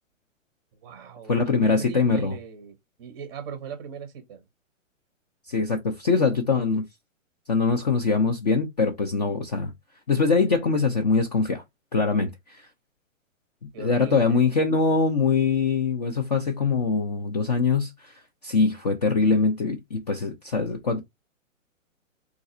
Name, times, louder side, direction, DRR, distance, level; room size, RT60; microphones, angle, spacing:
voice 1, 0.7-4.4 13.7-14.5, right 6 dB, 20° right, 0.6 m, -39 dB
voice 2, 1.3-2.4 5.5-6.8 7.5-9.7 10.1-11.6 11.9-12.7 13.8-21.0, left 4 dB, 30° left, 0.4 m, -23 dB
3.9 x 2.4 x 2.5 m
hypercardioid pair, 155°, 40 cm